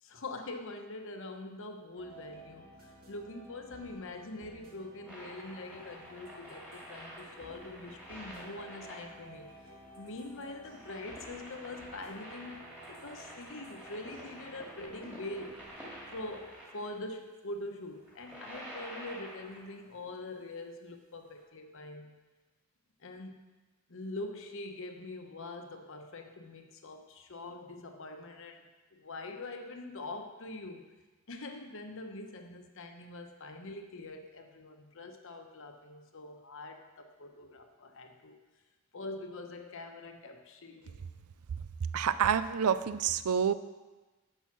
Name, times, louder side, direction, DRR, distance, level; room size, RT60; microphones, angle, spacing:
voice 1, 0.0-15.7 16.1-22.2 23.0-23.5 23.9-30.9 31.3-38.4 38.9-41.0, left 2 dB, 60° left, 5 dB, 1.0 m, -44 dB
sound 1, 2.0-16.5, right 1 dB, 45° right, 2.1 m, -54 dB
sound 2, 5.1-16.9 18.0-19.8 21.4-21.5, equal, 5° right, 2.2 m, -49 dB
voice 2, 41.9-43.5, right 7 dB, 85° right, 13 dB, 0.5 m, -28 dB
10.5 x 5.5 x 6.0 m, 1.2 s
head